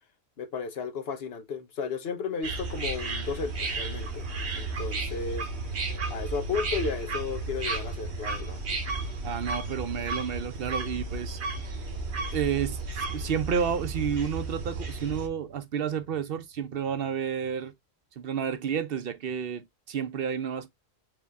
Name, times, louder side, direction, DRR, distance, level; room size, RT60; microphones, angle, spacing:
voice 1, 0.4-4.3 4.5-5.4 6.1-8.6, left 5 dB, 65° left, 1.1 m, -34 dB
sound 1, 2.4-15.3, right 3 dB, 80° right, 1.3 m, -33 dB
voice 2, 9.2-11.4 11.7-11.8 12.3-17.7 18.2-20.7, right 7 dB, 65° right, 0.8 m, -31 dB
4.7 x 2.7 x 3.4 m
omnidirectional pair, 1.1 m